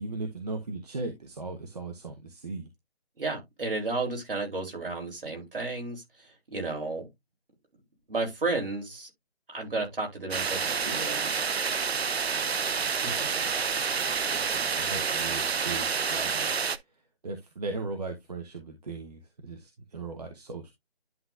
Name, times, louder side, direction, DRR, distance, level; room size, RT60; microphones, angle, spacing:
voice 1, 0.0-2.7 13.9-16.6 17.2-20.7, right 3 dB, 40° right, 1.1 m, -38 dB
voice 2, 3.2-6.0 6.5-7.0 8.1-9.1 9.5-11.4 12.3-13.1, right 3 dB, 60° right, 3.3 m, -33 dB
sound 1, 10.3-16.8, right 6 dB, 75° right, 0.7 m, -28 dB
11.0 x 3.8 x 2.5 m
figure-of-eight pair, 160°, 32 cm